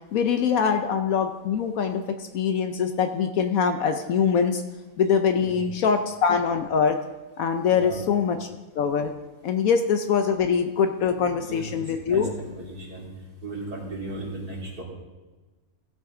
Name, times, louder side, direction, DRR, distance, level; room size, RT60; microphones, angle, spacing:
voice 1, 0.1-2.0 2.3-4.6 5.0-7.0 7.4-8.5 8.7-9.1 9.4-12.3, left 6 dB, 70° left, 6 dB, 1.1 m, -23 dB
voice 2, 7.7-8.0 11.1-13.1 13.4-14.8, right 2 dB, 85° right, -5 dB, 3.5 m, -36 dB
16.0 x 8.0 x 3.8 m, 1.2 s
omnidirectional pair, 1.6 m